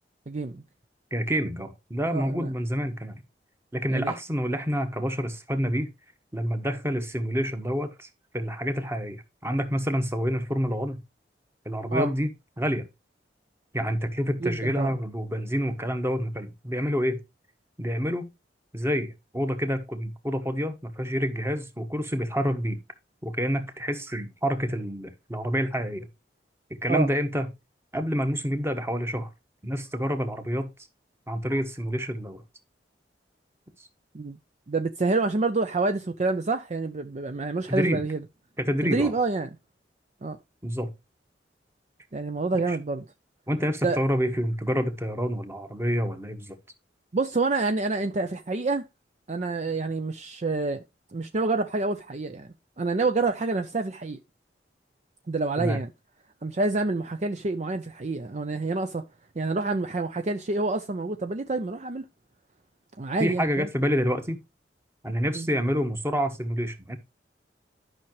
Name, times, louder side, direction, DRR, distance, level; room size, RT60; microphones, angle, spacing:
voice 1, 0.3-0.6 2.1-2.5 3.9-4.1 11.9-12.1 14.4-14.9 26.9-27.1 34.1-34.4 34.7-38.2 38.8-39.5 40.2-40.4 42.1-43.0 43.8-44.0 47.1-48.9 49.3-50.8 51.1-54.2 55.3-55.9 56.4-59.0 59.4-62.0 63.0-63.7 65.3-65.5, right 3 dB, 40° right, 0.5 m, -27 dB
voice 2, 1.1-3.2 3.7-5.9 6.3-8.1 8.3-11.0 11.6-12.3 12.6-12.8 13.7-17.2 17.8-18.3 18.7-22.8 23.2-26.1 26.8-27.5 27.9-29.3 29.6-30.7 31.3-32.4 37.7-38.0 38.6-39.1 40.6-40.9 42.7-42.8 43.5-46.6 55.6-55.8 63.2-64.4 65.0-67.0, equal, 15° right, 1.3 m, -28 dB
11.5 x 5.9 x 3.1 m
head